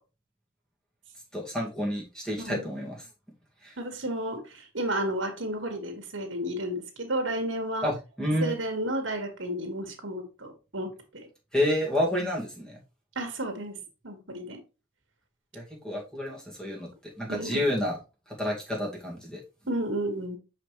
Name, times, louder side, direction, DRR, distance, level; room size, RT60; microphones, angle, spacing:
voice 1, 1.3-3.0 3.6-3.8 7.8-8.6 11.5-12.8 15.5-16.9 17.2-18.0 18.4-19.4, left 1 dB, 5° left, 2.1 m, -29 dB
voice 2, 2.4-2.7 3.8-7.9 8.4-10.9 12.2-12.3 13.2-13.8 14.0-14.6 17.3-17.6 19.7-20.4, right 1 dB, 70° right, 1.7 m, -32 dB
6.1 x 5.1 x 3.2 m
head